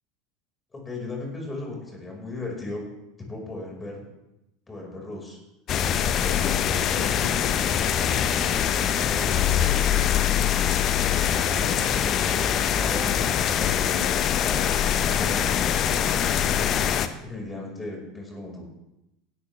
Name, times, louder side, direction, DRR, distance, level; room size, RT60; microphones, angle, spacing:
voice 1, 0.7-2.8 3.3-4.0 4.7-5.4 6.0-10.2 11.1-13.2 13.5-14.1 14.4-16.3 17.2-18.7, left 2 dB, 15° left, 0 dB, 5.1 m, -37 dB
sound 1, 5.7-17.1, left 9 dB, 40° left, 0.9 m, -23 dB
16.5 x 12.5 x 3.4 m, 0.91 s
figure-of-eight pair, 75°, 0 cm